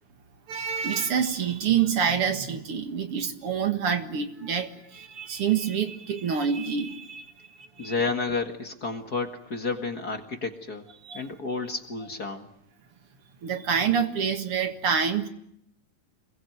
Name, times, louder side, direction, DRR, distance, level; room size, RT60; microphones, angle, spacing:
voice 1, 0.5-7.9 11.0-11.3 13.4-15.3, right 7 dB, 50° right, 2.3 m, -27 dB
voice 2, 7.8-10.9 11.1-12.5, left 4 dB, 35° left, 1.8 m, -31 dB
27.5 x 22.5 x 9.4 m
omnidirectional pair, 3.8 m